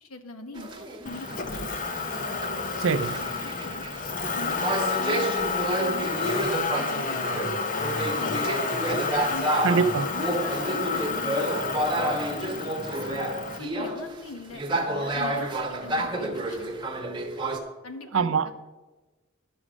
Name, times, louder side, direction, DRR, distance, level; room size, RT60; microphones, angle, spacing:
voice 1, 0.0-1.8 3.4-3.9 4.3-4.6 5.0-6.4 6.8-7.5 8.1-8.9 9.3-11.5 11.9-16.8 17.8-18.5, left 2 dB, 90° left, 1.1 m, -42 dB
sound 1, 0.5-17.6, right 1 dB, 20° right, 1.0 m, -30 dB
Motor vehicle (road), 1.1-13.6, left 4 dB, 40° left, 0.7 m, -30 dB
voice 2, 2.8-3.2 9.6-10.1 18.1-18.5, right 5 dB, 60° right, 0.5 m, -23 dB
11.0 x 6.2 x 6.2 m
head